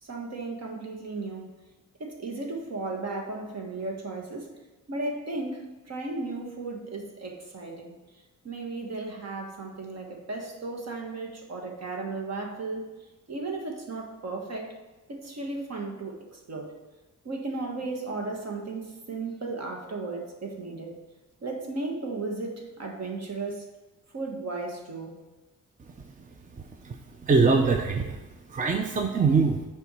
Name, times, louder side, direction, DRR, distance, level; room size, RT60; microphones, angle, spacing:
voice 1, 0.0-1.5 2.0-4.5 4.9-7.9 8.4-14.7 15.1-16.7 17.2-21.0 21.4-23.7 24.1-25.2, right 3 dB, 55° right, 1 dB, 1.5 m, -35 dB
voice 2, 26.8-28.2 28.5-29.7, right 4 dB, 25° right, 4 dB, 0.5 m, -23 dB
7.0 x 4.5 x 6.2 m, 1.2 s
wide cardioid pair, 145°, 32 cm